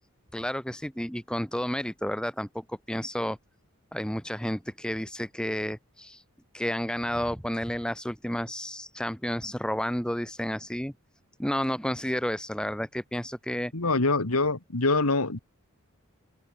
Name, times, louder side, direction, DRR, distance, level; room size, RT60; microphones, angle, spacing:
voice 1, 0.3-3.4 3.9-6.2 6.5-10.9 11.4-13.7, equal, 5° left, 1.5 m, -31 dB
voice 2, 13.7-15.4, left 3 dB, 90° left, 2.2 m, -25 dB
head